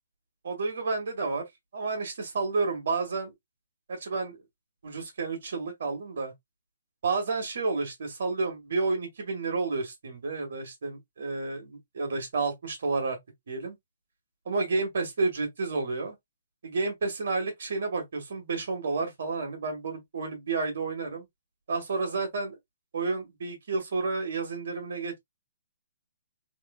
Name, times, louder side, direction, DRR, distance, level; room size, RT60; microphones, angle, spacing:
voice 1, 0.4-1.5 1.7-3.3 3.9-4.4 4.8-6.3 7.0-13.2 13.5-13.8 14.5-16.2 16.6-21.3 21.7-22.6 22.9-25.2, right 3 dB, 65° right, 1.9 m, -30 dB
3.6 x 3.3 x 2.5 m
figure-of-eight pair, 130°, 0 cm